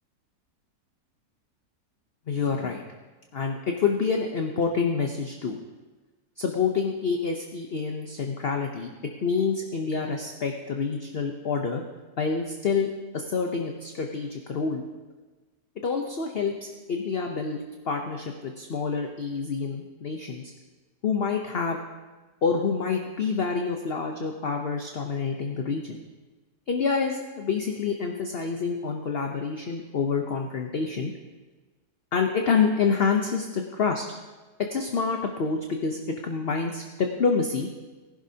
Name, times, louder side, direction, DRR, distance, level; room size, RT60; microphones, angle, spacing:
voice 1, 2.3-2.8 3.3-5.6 6.4-8.9 9.2-11.8 12.2-12.9 13.1-14.8 15.8-20.5 21.0-21.8 22.4-26.0 26.7-31.1 32.1-34.0 34.6-37.7, left 5 dB, 45° left, 3 dB, 0.9 m, -27 dB
19.0 x 11.0 x 2.8 m, 1.3 s
omnidirectional pair, 1.7 m